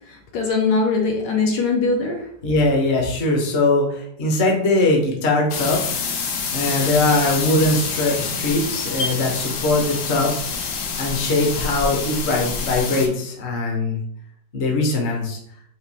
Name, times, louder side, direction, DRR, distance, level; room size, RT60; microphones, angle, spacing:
voice 1, 0.1-2.2, left 4 dB, 70° left, 1 dB, 1.3 m, -21 dB
voice 2, 2.4-6.1 6.5-10.6 11.0-14.0 14.5-15.4, left 2 dB, 45° left, 0 dB, 0.9 m, -21 dB
sound 1, 5.5-13.1, left 5 dB, 90° left, 0.6 m, -27 dB
4.4 x 2.6 x 4.0 m, 0.68 s
omnidirectional pair, 2.1 m